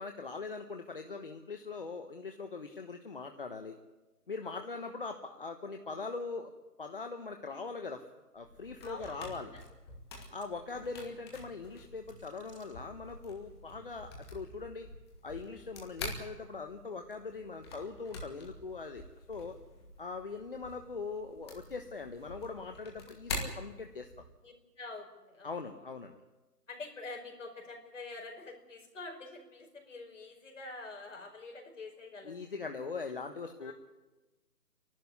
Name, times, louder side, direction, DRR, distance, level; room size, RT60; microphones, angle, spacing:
voice 1, 0.0-3.8 4.3-6.5 6.8-8.0 8.3-9.5 10.3-14.9 15.2-19.6 20.0-24.1 25.4-26.1 32.2-33.7, left 4 dB, 35° left, 5 dB, 1.2 m, -41 dB
sound 1, 8.4-24.3, left 2 dB, 15° left, 2.4 m, -46 dB
voice 2, 8.8-9.3 24.4-25.6 26.7-32.4 33.6-33.7, left 3 dB, 50° left, 3 dB, 5.0 m, -46 dB
sound 2, 9.6-9.7 10.4-10.6 11.3-11.4 12.0-13.2, right 3 dB, 85° right, 6.5 m, -63 dB
28.5 x 12.0 x 9.6 m, 1.1 s
hypercardioid pair, 170°, 47 cm